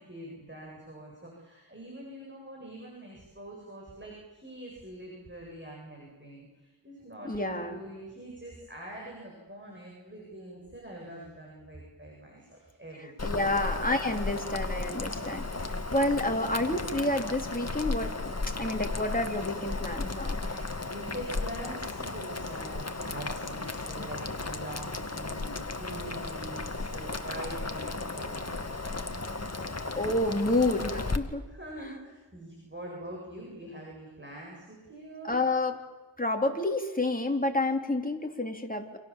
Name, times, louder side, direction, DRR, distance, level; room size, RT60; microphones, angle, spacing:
voice 1, 0.0-13.7 20.4-29.3 31.5-35.4, right 1 dB, 25° right, -2 dB, 7.9 m, -44 dB
voice 2, 7.3-7.8 13.2-15.5 15.9-20.4 29.9-31.5 35.3-35.8 36.2-39.0, left 2 dB, 20° left, 3 dB, 3.5 m, -29 dB
Boiling, 13.2-31.2, left 3 dB, 35° left, 2.0 m, -35 dB
29.0 x 27.0 x 7.5 m, 1.2 s
wide cardioid pair, 65°, 46 cm